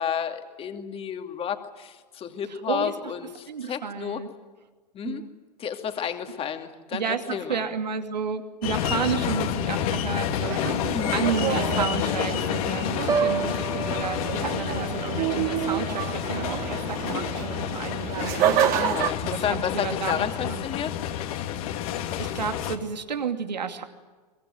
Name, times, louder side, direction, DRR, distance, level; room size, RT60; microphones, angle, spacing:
voice 1, 0.0-4.2 4.9-5.2 5.6-7.6 10.9-11.2 18.8-21.0, left 8 dB, 25° left, 6 dB, 2.5 m, -31 dB
voice 2, 2.5-3.1 3.5-4.3 5.0-5.3 6.9-10.8 11.1-18.8 19.2-20.7 21.7-21.8 22.2-23.8, right 6 dB, 85° right, 7 dB, 2.7 m, -32 dB
sound 1, 8.6-22.8, left 10 dB, 60° left, 2.7 m, -29 dB
sound 2, 10.4-19.1, right 10 dB, 45° right, 3.0 m, -29 dB
Piano, 13.1-17.0 17.4-17.8, right 5 dB, 15° right, 0.9 m, -32 dB
24.0 x 21.5 x 9.3 m, 1.4 s
hypercardioid pair, 105°, 21 cm